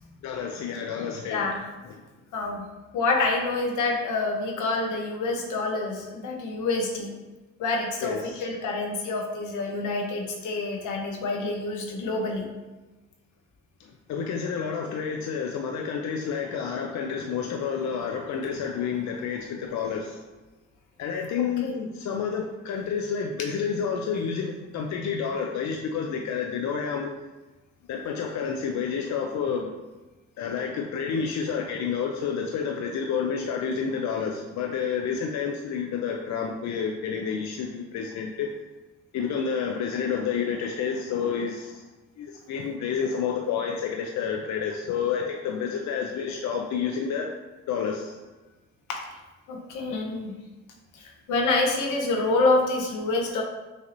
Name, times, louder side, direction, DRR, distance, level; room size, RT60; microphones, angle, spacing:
voice 1, 0.2-1.4 8.0-8.3 14.1-20.2 21.0-27.1 27.9-29.7 30.4-38.5 39.1-41.7 42.2-47.3 47.7-48.1, left 6 dB, 65° left, 1 dB, 0.5 m, -29 dB
voice 2, 1.3-1.6 2.3-2.6 2.9-7.1 7.6-12.4 21.4-21.7 48.9-49.0 49.5-50.3 51.0-53.4, left 3 dB, 85° left, 1 dB, 0.9 m, -27 dB
6.3 x 2.8 x 2.6 m, 1.2 s
cardioid pair, 90°, 30 cm